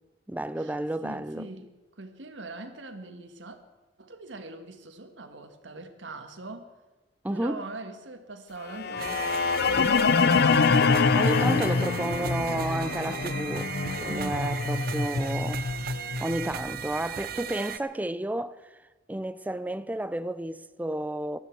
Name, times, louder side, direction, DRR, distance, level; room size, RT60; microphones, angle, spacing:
voice 1, 0.3-1.5 7.2-7.6 11.1-13.7 14.0-15.6 16.2-18.6 19.1-21.4, right 1 dB, 10° right, 0.4 m, -31 dB
voice 2, 1.0-3.6 4.0-6.7 7.3-11.0 14.1-14.4, right 2 dB, 85° right, 1.5 m, -42 dB
sound 1, 8.7-16.8, left 4 dB, 60° left, 0.6 m, -25 dB
sound 2, 9.0-17.8, right 9 dB, 55° right, 0.6 m, -37 dB
19.0 x 13.0 x 4.6 m
head